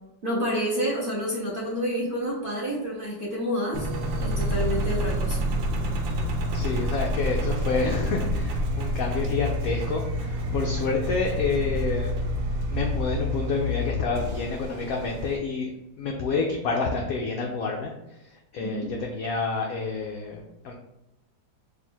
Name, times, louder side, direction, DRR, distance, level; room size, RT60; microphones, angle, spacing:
voice 1, 0.2-3.9 4.2-5.5 18.6-18.9, equal, 45° right, -6 dB, 0.7 m, -29 dB
Engine, 3.7-15.4, equal, 90° right, 1.4 m, -28 dB
voice 2, 6.5-12.1 12.7-15.7 16.0-17.9 18.5-20.7, left 4 dB, 80° left, 1 dB, 0.7 m, -28 dB
3.4 x 2.5 x 4.3 m, 0.94 s
omnidirectional pair, 2.0 m